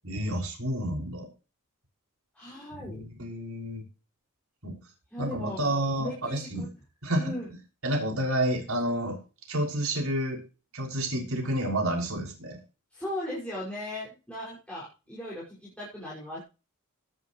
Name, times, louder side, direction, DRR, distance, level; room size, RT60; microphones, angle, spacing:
voice 1, 0.0-1.3 2.8-3.8 4.6-4.8 5.2-6.7 7.0-7.3 7.8-9.2 9.5-10.4 10.7-12.6, right 1 dB, 70° right, 1 dB, 6.1 m, -29 dB
voice 2, 2.3-3.0 5.1-5.7 6.0-6.7 7.2-7.5 12.9-16.4, left 1 dB, 5° left, -7 dB, 5.6 m, -38 dB
17.5 x 9.7 x 3.1 m, 0.31 s
head